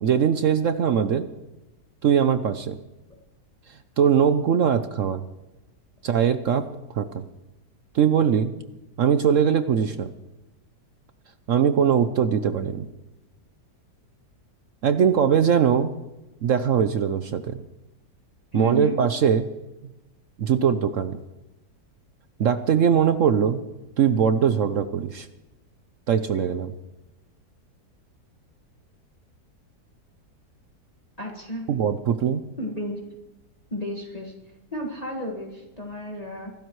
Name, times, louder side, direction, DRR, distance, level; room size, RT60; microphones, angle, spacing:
voice 1, 0.0-1.3 2.0-2.8 4.0-5.2 6.0-6.7 6.9-7.3 7.9-8.5 9.0-10.1 11.5-12.8 14.8-15.9 16.4-17.6 18.5-19.4 20.4-21.2 22.4-23.6 24.0-25.3 26.1-26.7 31.7-32.4, right 8 dB, 60° right, 10 dB, 0.8 m, -21 dB
voice 2, 18.5-19.0 31.2-31.6 32.6-33.0 33.7-34.3 34.7-36.5, equal, 25° left, -1 dB, 1.8 m, -32 dB
24.0 x 12.5 x 3.1 m, 1.0 s
omnidirectional pair, 1.8 m